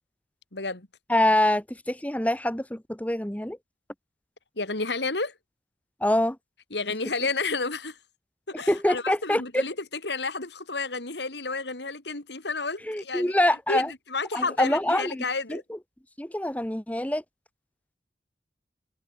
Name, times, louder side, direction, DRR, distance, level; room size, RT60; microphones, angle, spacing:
voice 1, 0.5-0.9 4.6-5.3 6.7-8.0 8.5-13.4 13.7-15.6, left 3 dB, 75° left, 3.1 m, -31 dB
voice 2, 1.1-3.6 6.0-6.4 8.5-9.6 12.9-13.9 14.3-15.2 15.5-15.6 16.2-17.2, left 1 dB, 10° left, 1.3 m, -25 dB
head